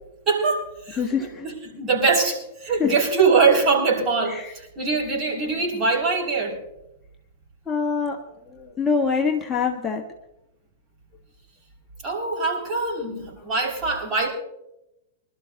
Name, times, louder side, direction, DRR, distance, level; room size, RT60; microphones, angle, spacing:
voice 1, 0.3-6.6 12.0-14.3, right 4 dB, 25° right, 6.5 m, -23 dB
voice 2, 1.0-1.4 2.8-2.9 4.3-4.5 7.7-8.2 8.4-10.0, left 5 dB, 15° left, 1.4 m, -24 dB
25.5 x 13.0 x 2.9 m
figure-of-eight pair, 100°, 0 cm